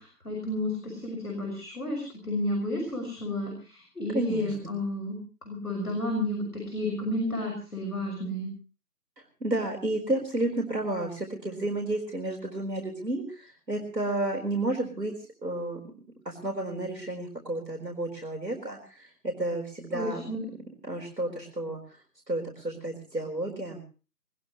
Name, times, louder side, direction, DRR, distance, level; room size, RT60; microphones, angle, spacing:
voice 1, 0.0-8.5 19.9-20.4, left 1 dB, 60° left, 2 dB, 6.0 m, -32 dB
voice 2, 4.1-4.5 9.4-15.1 15.4-15.8 16.2-20.3 20.8-21.8 22.3-23.9, right 2 dB, 75° right, 0 dB, 4.5 m, -31 dB
20.5 x 20.5 x 3.1 m, 0.36 s
figure-of-eight pair, 170°, 50 cm